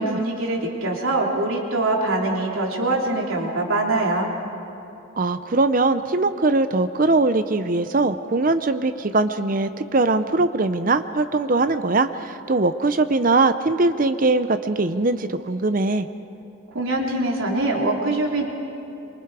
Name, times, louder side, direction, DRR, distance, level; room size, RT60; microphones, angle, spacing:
voice 1, 0.0-4.3 16.7-18.4, right 2 dB, 75° right, -1 dB, 3.3 m, -23 dB
voice 2, 5.2-16.1, right 3 dB, 40° right, 10 dB, 0.6 m, -21 dB
27.5 x 24.5 x 4.8 m, 3.0 s
head